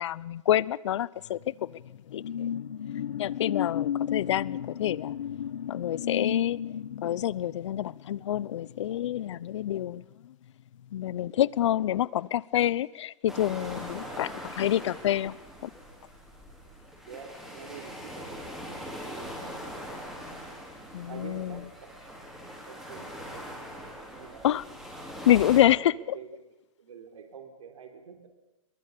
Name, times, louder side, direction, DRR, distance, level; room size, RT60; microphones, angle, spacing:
voice 1, 0.0-1.4 2.1-2.2 3.2-5.1 5.7-6.6 7.0-10.0 10.9-15.4 15.6-15.7 20.9-21.6 24.4-24.6 25.3-25.9, left 12 dB, 60° left, 23 dB, 0.7 m, -27 dB
sound 1, 1.3-10.2 10.6-10.8, left 9 dB, 80° left, 1.1 m, -34 dB
sound 2, 13.3-25.6, equal, 5° right, 4.7 m, -42 dB
voice 2, 17.1-18.4 18.6-20.2 21.1-23.6 24.1-24.7 25.6-28.3, right 6 dB, 85° right, 5 dB, 3.7 m, -47 dB
23.5 x 22.0 x 6.9 m, 0.95 s
hypercardioid pair, 160°, 17 cm